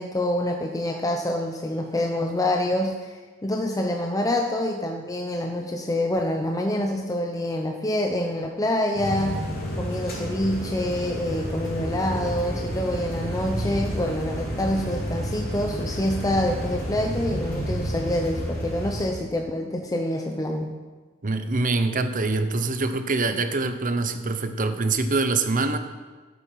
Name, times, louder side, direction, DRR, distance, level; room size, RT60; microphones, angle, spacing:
voice 1, 0.0-9.4 9.8-20.8, left 1 dB, 15° left, 2 dB, 0.8 m, -26 dB
sound 1, 8.9-19.1, equal, 45° left, 3.7 m, -30 dB
voice 2, 21.2-25.8, right 3 dB, 40° right, 9 dB, 0.9 m, -24 dB
13.5 x 8.3 x 5.7 m, 1.4 s
head